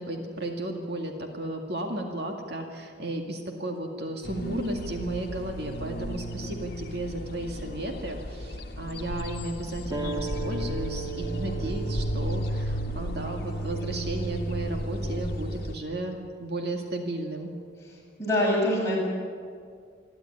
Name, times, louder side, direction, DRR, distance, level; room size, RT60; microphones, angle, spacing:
voice 1, 0.0-17.5, right 1 dB, 60° right, 2 dB, 2.2 m, -34 dB
sound 1, 4.2-15.7, equal, 55° left, 1.9 m, -33 dB
sound 2, 9.9-15.0, right 4 dB, 20° right, 1.6 m, -39 dB
voice 2, 18.2-19.0, left 1 dB, 15° left, -5 dB, 7.4 m, -24 dB
27.0 x 11.5 x 9.8 m, 2.2 s
head